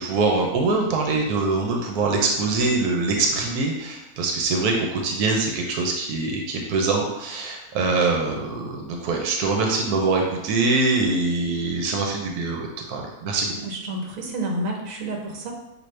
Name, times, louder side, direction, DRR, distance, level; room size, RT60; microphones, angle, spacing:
voice 1, 0.0-13.5, right 3 dB, 90° right, 1 dB, 1.2 m, -23 dB
voice 2, 13.6-15.5, right 1 dB, 65° right, 0 dB, 1.2 m, -29 dB
6.1 x 2.7 x 3.2 m, 0.97 s
omnidirectional pair, 1.6 m